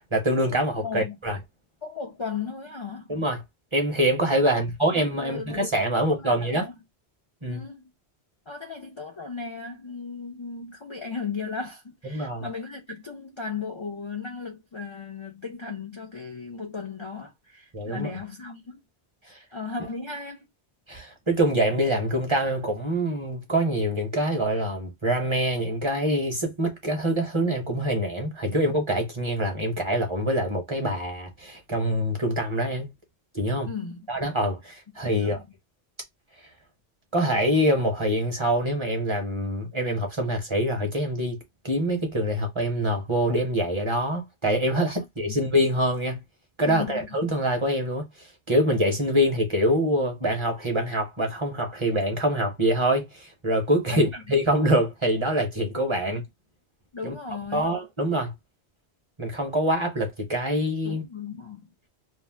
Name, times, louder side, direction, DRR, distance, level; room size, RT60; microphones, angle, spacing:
voice 1, 0.1-1.4 3.1-3.4 3.7-6.7 7.4-7.6 12.0-12.4 17.7-18.1 19.3-19.4 20.9-32.9 33.3-33.7 34.1-35.4 37.1-41.4 41.6-46.2 46.6-56.2 57.0-57.1 57.5-58.3 59.2-61.0, equal, 30° right, 0.8 m, -25 dB
voice 2, 0.8-1.2 1.8-3.1 4.4-4.6 4.9-5.6 5.9-6.8 7.5-7.9 8.5-18.8 19.5-20.5 28.5-28.6 33.6-34.1 35.1-35.4 46.6-47.1 53.9-54.1 56.9-57.7 60.8-61.7, left 5 dB, 40° left, 0.4 m, -36 dB
2.7 x 2.1 x 3.2 m
omnidirectional pair, 1.1 m